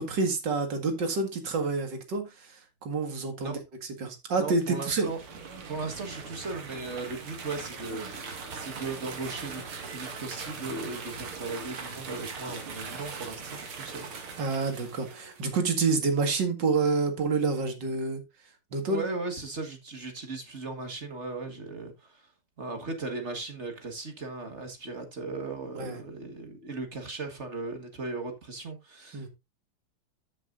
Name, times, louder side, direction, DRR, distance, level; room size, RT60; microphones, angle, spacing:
voice 1, 0.0-3.6 4.0-5.1 14.4-18.2 18.7-19.0 25.8-26.0 29.1-29.3, right 4 dB, 55° right, 2.5 m, -28 dB
voice 2, 4.3-5.2 5.7-14.1 18.7-22.3 22.6-29.3, right 3 dB, 35° right, 1.7 m, -37 dB
sound 1, 4.7-15.5, right 5 dB, 80° right, 2.6 m, -40 dB
14.0 x 6.4 x 2.5 m
omnidirectional pair, 2.4 m